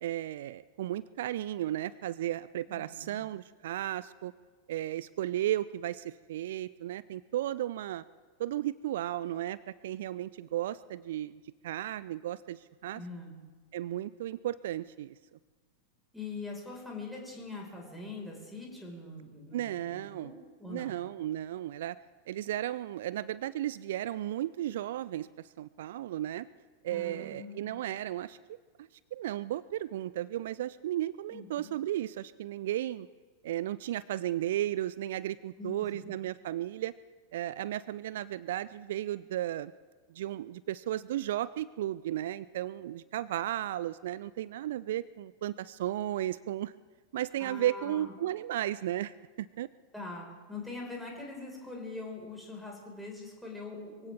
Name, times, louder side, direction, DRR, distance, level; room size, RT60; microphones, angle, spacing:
voice 1, 0.0-4.3 4.7-8.0 8.4-9.6 9.8-13.0 13.7-15.1 19.5-20.3 20.7-22.0 22.3-26.5 26.8-33.1 33.4-36.9 37.3-39.7 40.1-46.7 47.1-49.7, right 13 dB, 55° right, 18 dB, 0.4 m, -34 dB
voice 2, 2.7-3.2 12.9-13.4 16.1-20.9 26.9-27.7 31.3-31.7 35.6-35.7 47.4-48.1 49.9-54.1, left 3 dB, ahead, -2 dB, 5.1 m, -43 dB
23.0 x 17.0 x 3.6 m, 1.4 s
figure-of-eight pair, 90°, 0 cm